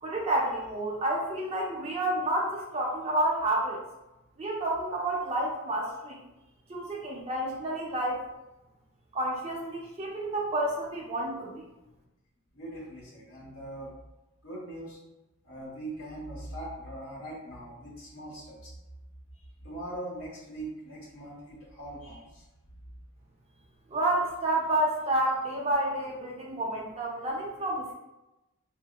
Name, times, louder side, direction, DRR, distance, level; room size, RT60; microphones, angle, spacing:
voice 1, 0.0-3.8 4.4-6.2 6.7-8.3 9.1-11.7 23.9-27.9, right 1 dB, 25° right, -3 dB, 0.6 m, -29 dB
voice 2, 12.5-13.9 14.4-15.0 15.4-18.8 19.6-22.4, right 1 dB, 70° left, -7 dB, 1.2 m, -41 dB
4.7 x 2.1 x 2.2 m, 0.97 s
head